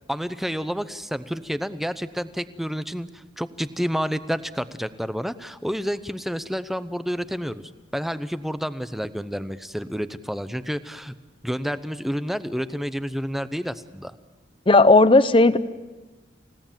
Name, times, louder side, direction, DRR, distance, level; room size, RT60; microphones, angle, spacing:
voice 1, 0.1-7.6 7.9-11.1 11.4-14.1, equal, ahead, 12 dB, 0.7 m, -29 dB
voice 2, 14.7-15.6, left 2 dB, 30° left, 13 dB, 0.8 m, -14 dB
29.0 x 17.0 x 7.4 m, 1.2 s
head